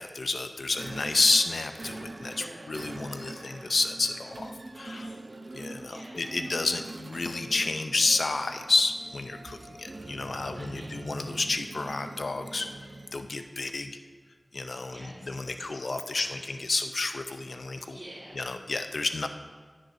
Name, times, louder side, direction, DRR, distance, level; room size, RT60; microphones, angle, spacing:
voice 1, 0.0-5.1 5.5-12.7 13.1-13.9 14.5-18.0 18.3-19.3, left 3 dB, 80° left, 7 dB, 0.5 m, -30 dB
sound 1, 0.7-13.3, right 2 dB, 65° right, 0.5 m, -43 dB
voice 2, 2.4-2.7 4.8-6.3 10.4-11.0 12.5-13.0 14.9-15.1 15.4-15.8 16.1-16.4 17.8-18.4, right 1 dB, 35° right, -11 dB, 2.4 m, -49 dB
10.0 x 9.3 x 2.6 m, 1.5 s
wide cardioid pair, 60°, 0 cm